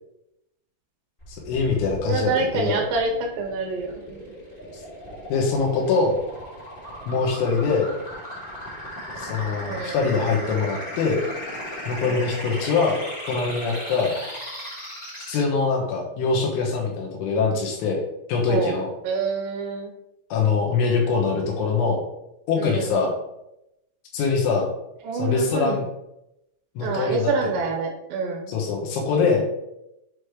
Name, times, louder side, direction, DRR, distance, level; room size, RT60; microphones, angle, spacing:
sound 1, 1.2-15.4, equal, 25° left, 1.0 m, -37 dB
voice 1, 1.3-2.8 5.3-6.2 7.1-7.9 9.2-11.2 11.9-13.0 13.3-14.2 15.3-18.0 18.3-18.9 20.3-22.0 22.5-23.1 24.1-24.7 25.1-25.9 26.8-27.5 28.5-29.5, left 4 dB, 75° left, -1 dB, 3.5 m, -23 dB
voice 2, 2.0-4.3 9.6-10.0 12.0-12.3 18.5-18.8 19.0-19.9 22.6-23.0 25.0-25.8 26.8-28.5, right 4 dB, 75° right, 1 dB, 2.8 m, -27 dB
8.2 x 3.1 x 4.7 m, 0.86 s
omnidirectional pair, 5.8 m